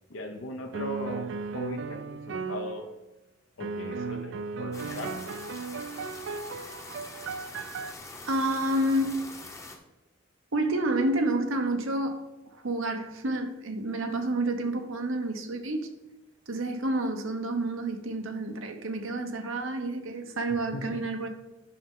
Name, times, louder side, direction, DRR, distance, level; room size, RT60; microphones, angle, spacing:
voice 1, 0.1-1.3 1.5-2.9 3.6-4.3 4.6-5.2 20.7-21.0, left 1 dB, 80° left, 3 dB, 0.8 m, -38 dB
sound 1, 0.7-2.9 3.6-7.9, right 4 dB, 60° right, 0.3 m, -36 dB
sound 2, 4.7-9.8, left 2 dB, 15° left, 0.8 m, -44 dB
voice 2, 8.3-9.2 10.5-12.2 12.5-15.9 16.5-21.3, right 1 dB, 90° right, 6 dB, 0.9 m, -29 dB
11.5 x 5.4 x 3.8 m, 1.0 s
head